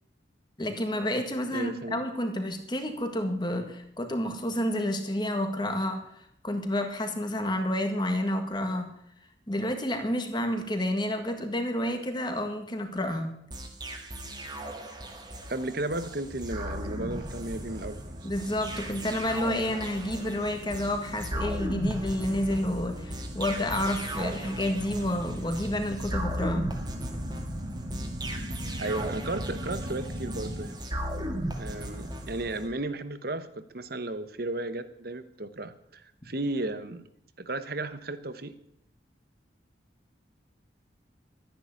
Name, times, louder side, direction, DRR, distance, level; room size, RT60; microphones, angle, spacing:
voice 1, 0.6-8.9 9.5-13.4 18.2-26.7, left 1 dB, 25° left, 6 dB, 1.9 m, -30 dB
voice 2, 1.5-2.0 15.5-18.3 28.8-30.8 31.5-37.0 37.4-38.5, right 2 dB, 55° right, 12 dB, 1.1 m, -34 dB
sound 1, 13.5-32.7, equal, 20° right, 1.9 m, -37 dB
sound 2, 16.2-30.7, equal, 80° right, 2.6 m, -40 dB
13.0 x 10.5 x 8.4 m, 0.73 s
head